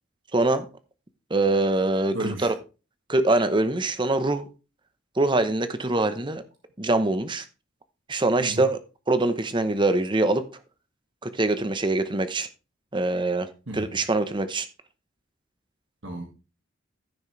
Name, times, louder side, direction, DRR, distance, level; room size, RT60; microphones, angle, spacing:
voice 1, 0.3-0.7 1.3-2.5 3.1-4.5 5.2-6.4 6.8-7.4 8.1-8.8 9.1-10.4 11.2-12.5 12.9-14.7, right 2 dB, 25° right, 11 dB, 0.9 m, -24 dB
voice 2, 2.1-2.5 8.4-8.7 13.7-14.0 16.0-16.3, right 2 dB, 65° right, 1 dB, 1.8 m, -33 dB
14.5 x 6.3 x 3.2 m, 0.32 s
head